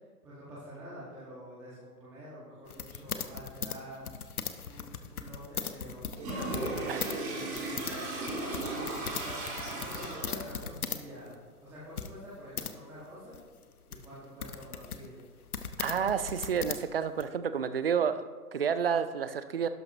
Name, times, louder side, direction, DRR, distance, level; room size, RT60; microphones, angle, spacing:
voice 1, 0.2-4.1 4.6-8.2 8.7-9.5 9.8-13.4 13.9-15.2, equal, 5° right, -9 dB, 1.4 m, -47 dB
sound 1, 2.7-7.2 7.4-11.0 11.3-11.4 12.0-12.7 13.3-17.2, left 7 dB, 70° left, 1.0 m, -39 dB
Toilet flush, 6.2-10.5, right 2 dB, 25° right, 3.0 m, -36 dB
voice 2, 15.8-19.7, right 7 dB, 40° right, 12 dB, 0.5 m, -30 dB
12.0 x 11.0 x 2.9 m, 1.4 s
figure-of-eight pair, 145°, 46 cm